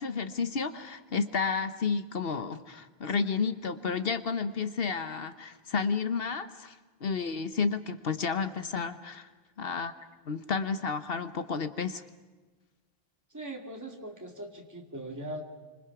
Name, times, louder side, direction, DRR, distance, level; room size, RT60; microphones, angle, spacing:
voice 1, 0.0-6.8 7.0-9.3 9.6-9.9 10.3-12.0, left 5 dB, 65° left, 10 dB, 1.2 m, -31 dB
voice 2, 13.3-15.4, right 1 dB, 15° right, 1 dB, 2.5 m, -40 dB
27.0 x 25.5 x 6.0 m, 1.3 s
omnidirectional pair, 1.1 m